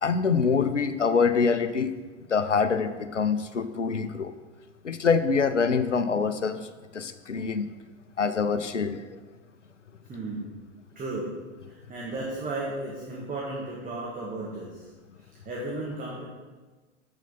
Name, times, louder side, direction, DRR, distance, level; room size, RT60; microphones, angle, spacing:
voice 1, 0.0-1.9 2.3-4.3 4.8-7.7 8.2-9.1, left 5 dB, 85° left, 12 dB, 0.6 m, -25 dB
voice 2, 10.1-10.5 10.9-11.3 11.6-14.9 15.2-16.2, right 2 dB, 25° right, -4 dB, 1.7 m, -34 dB
9.1 x 7.6 x 4.1 m, 1.3 s
figure-of-eight pair, 85°, 35 cm